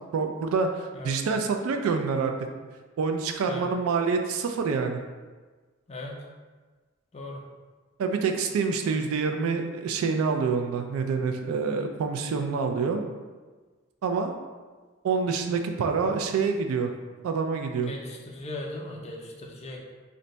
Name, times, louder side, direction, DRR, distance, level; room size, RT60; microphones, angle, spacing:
voice 1, 0.1-0.7 1.0-2.3 3.0-5.0 8.0-13.0 14.0-14.3 15.0-16.9 17.2-17.9, right 5 dB, 85° right, 5 dB, 0.3 m, -26 dB
voice 2, 5.9-6.2 7.1-7.4 17.9-19.8, left 2 dB, 30° left, 0 dB, 0.4 m, -38 dB
2.6 x 2.1 x 3.9 m, 1.4 s
head